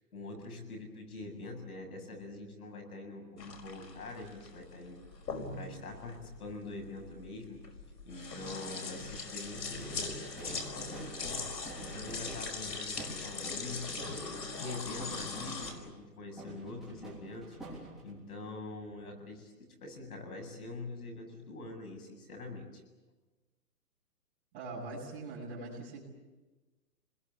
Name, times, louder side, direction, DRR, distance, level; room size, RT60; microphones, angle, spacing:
voice 1, 0.1-5.0 5.5-7.6 8.0-11.4 11.8-13.8 14.6-19.5 19.8-22.8, left 2 dB, 65° left, 3 dB, 7.8 m, -44 dB
sound 1, 3.4-15.7, left 4 dB, 90° left, 5.4 m, -41 dB
sound 2, 9.6-16.1 16.4-18.3, right 2 dB, ahead, 3.4 m, -48 dB
voice 2, 24.5-26.0, right 2 dB, 15° right, -6 dB, 7.7 m, -42 dB
28.0 x 21.5 x 8.4 m, 1.2 s
hypercardioid pair, 175°, 48 cm